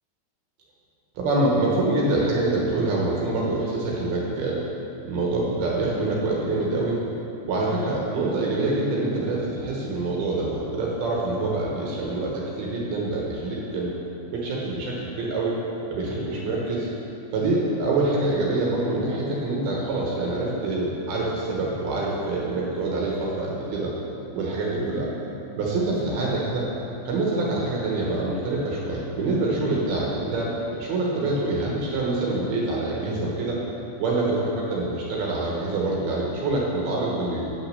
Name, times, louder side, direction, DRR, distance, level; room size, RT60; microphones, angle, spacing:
voice 1, 1.2-4.6 5.1-7.0 7.4-14.0 14.3-15.5 15.9-16.9 17.3-23.9 24.3-25.1 25.5-26.7 27.1-33.6 34.0-37.5, right 2 dB, 70° right, -4 dB, 2.8 m, -25 dB
9.1 x 6.4 x 6.6 m, 3.0 s
omnidirectional pair, 5.2 m